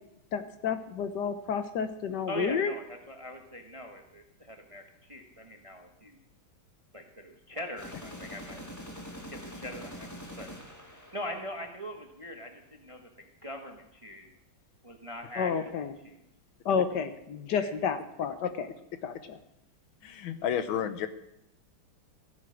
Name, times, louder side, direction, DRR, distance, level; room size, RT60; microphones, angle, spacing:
voice 1, 0.3-2.7 15.4-15.9 16.6-18.7 19.0-19.4, left 6 dB, 60° left, 10 dB, 1.4 m, -30 dB
voice 2, 2.3-6.2 6.9-8.6 9.3-10.1 10.4-10.5 11.1-14.3 14.8-16.2 17.5-17.7, equal, 25° right, 4 dB, 0.8 m, -42 dB
sound 1, 7.8-11.8, equal, 10° left, 1.5 m, -44 dB
voice 3, 20.0-21.1, left 9 dB, 80° left, 10 dB, 1.7 m, -31 dB
15.5 x 8.7 x 6.3 m, 0.82 s
omnidirectional pair, 2.2 m